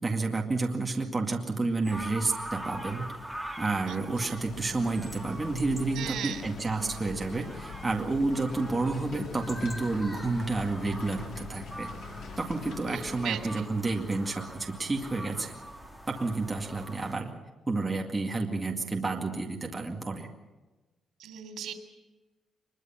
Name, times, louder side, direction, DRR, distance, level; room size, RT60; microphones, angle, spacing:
voice 1, 0.0-3.0 3.6-11.9 12.4-15.5 16.1-17.3 17.7-20.3, right 3 dB, 15° right, 0 dB, 2.2 m, -30 dB
sound 1, 1.8-17.2, equal, ahead, 2.1 m, -44 dB
voice 2, 3.9-4.3 5.9-6.5 12.8-13.6 21.2-21.7, right 9 dB, 85° right, 7 dB, 3.4 m, -37 dB
sound 2, 4.4-13.3, left 4 dB, 70° left, 3.1 m, -44 dB
sound 3, 8.4-15.6, left 1 dB, 20° left, 3.5 m, -49 dB
23.5 x 22.5 x 5.9 m, 1.2 s
cardioid pair, 180°, 0 cm